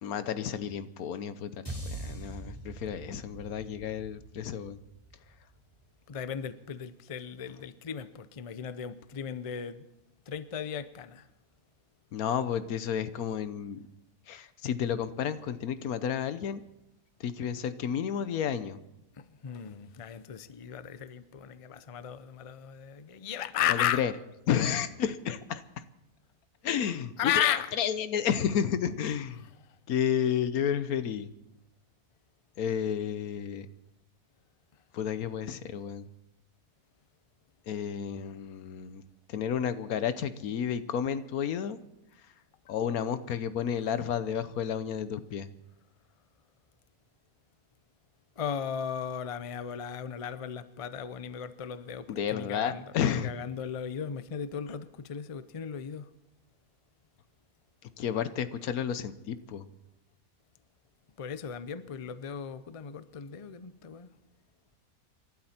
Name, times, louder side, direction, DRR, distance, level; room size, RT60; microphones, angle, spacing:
voice 1, 0.0-4.8 12.1-13.9 14.3-16.6 17.2-18.8 23.7-24.1 24.5-25.6 26.6-29.4 29.9-31.3 32.6-33.7 34.9-36.0 37.7-39.0 39.3-41.8 42.7-45.5 52.1-53.3 58.0-59.7, left 8 dB, 85° left, 1.3 m, -31 dB
sound 1, 1.7-6.0, right 1 dB, 15° left, 5.1 m, -43 dB
voice 2, 6.1-9.9 10.3-11.3 19.1-24.0 27.2-27.7 29.6-29.8 48.4-56.1 61.2-64.1, left 9 dB, 40° left, 0.5 m, -35 dB
28.0 x 12.0 x 4.3 m
omnidirectional pair, 1.5 m